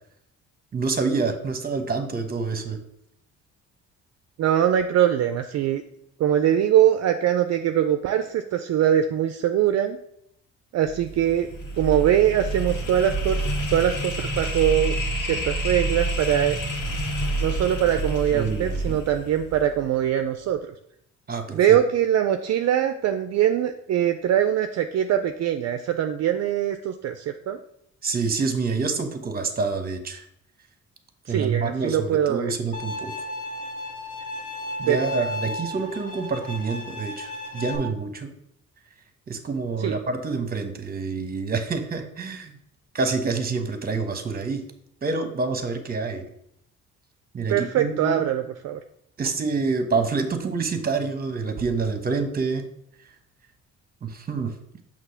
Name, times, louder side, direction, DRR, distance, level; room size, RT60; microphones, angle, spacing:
voice 1, 0.7-2.8 18.3-19.0 21.3-21.8 28.0-30.2 31.3-33.1 34.8-38.3 39.3-42.6 42.9-44.6 45.0-46.2 47.3-48.2 49.2-52.6 54.0-54.5, right 4 dB, 30° right, 7 dB, 0.9 m, -27 dB
voice 2, 4.4-5.8 6.2-10.0 10.7-11.5 11.8-16.6 17.4-20.6 21.5-27.6 31.3-32.5 34.9-35.2 39.8-40.0 47.5-48.8, right 10 dB, 60° right, 8 dB, 0.5 m, -22 dB
sound 1, 10.8-20.0, right 1 dB, 90° left, 1.7 m, -28 dB
Bowed string instrument, 32.7-37.8, left 1 dB, 25° left, 1.3 m, -34 dB
6.0 x 3.0 x 5.6 m, 0.73 s
cardioid pair, 90°, 30 cm